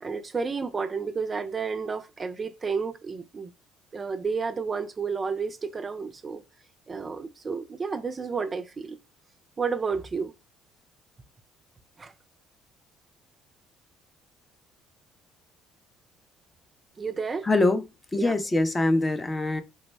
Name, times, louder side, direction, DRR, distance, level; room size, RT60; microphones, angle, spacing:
voice 1, 0.0-3.5 3.9-6.4 6.9-9.0 9.6-10.3 12.0-12.1 17.0-17.5 18.2-18.3, right 5 dB, 30° right, 0.3 m, -31 dB
voice 2, 17.4-17.8 18.1-19.6, left 2 dB, 20° left, 0.5 m, -23 dB
3.3 x 2.0 x 3.2 m
supercardioid pair, 85°, 0 cm